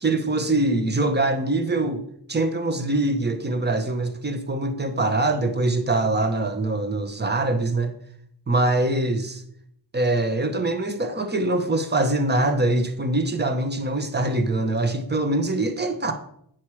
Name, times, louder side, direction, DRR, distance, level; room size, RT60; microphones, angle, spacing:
voice 1, 0.0-2.0 2.3-7.9 8.5-9.4 9.9-16.1, right 2 dB, 25° right, 1.1 m, -23 dB
9.2 x 6.1 x 4.8 m
wide cardioid pair, 135°, 42 cm